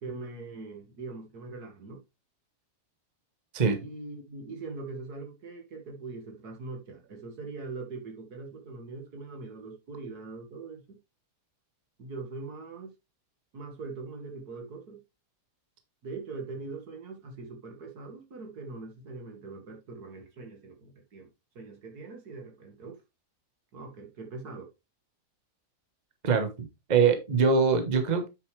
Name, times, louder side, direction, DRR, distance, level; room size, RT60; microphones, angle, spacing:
voice 1, 0.0-2.0 3.8-11.0 12.0-12.9 13.5-15.0 16.0-21.3 21.6-23.0 23.7-24.7, right 3 dB, 70° right, 2.4 m, -42 dB
voice 2, 26.9-28.3, right 5 dB, 30° right, 1.3 m, -23 dB
8.2 x 6.8 x 3.3 m
omnidirectional pair, 1.7 m